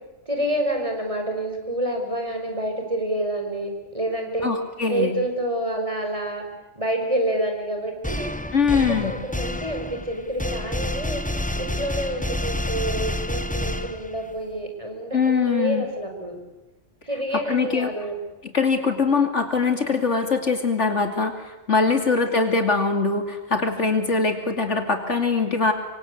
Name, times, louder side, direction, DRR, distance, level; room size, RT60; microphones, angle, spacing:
voice 1, 0.3-4.5 4.9-6.4 6.8-8.3 8.7-11.2 11.6-16.4 17.1-18.2 22.0-22.4, right 1 dB, 25° right, 3 dB, 5.7 m, -28 dB
voice 2, 4.4-5.1 8.5-9.1 15.1-15.9 17.5-17.9 18.4-25.7, left 4 dB, 60° left, 5 dB, 3.0 m, -22 dB
sound 1, 8.0-14.4, left 1 dB, 5° left, 1.2 m, -29 dB
26.0 x 24.5 x 8.5 m, 1.0 s
omnidirectional pair, 1.3 m